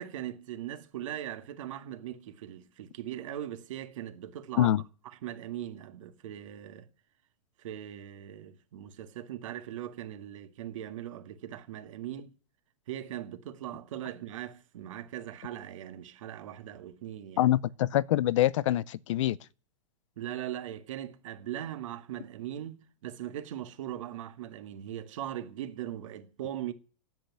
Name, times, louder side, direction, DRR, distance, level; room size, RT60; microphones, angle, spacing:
voice 1, 0.0-4.8 5.2-6.9 7.6-12.3 12.9-17.5 20.2-26.7, right 11 dB, 65° right, 2.0 m, -40 dB
voice 2, 17.4-19.4, left 13 dB, 60° left, 0.7 m, -25 dB
10.5 x 8.1 x 9.6 m
supercardioid pair, 150°, 18 cm